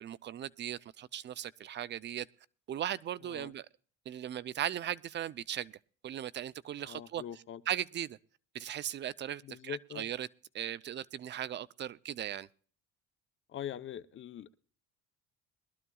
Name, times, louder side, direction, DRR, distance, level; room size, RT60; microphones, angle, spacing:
voice 1, 0.0-2.3 2.7-3.7 4.1-5.7 6.0-7.2 7.7-8.2 8.5-10.3 10.5-12.5, right 11 dB, 40° right, 0.5 m, -38 dB
voice 2, 6.8-7.6 9.4-10.1 13.5-14.5, left 10 dB, 45° left, 0.8 m, -43 dB
22.0 x 12.0 x 2.3 m
cardioid pair, 130°, 29 cm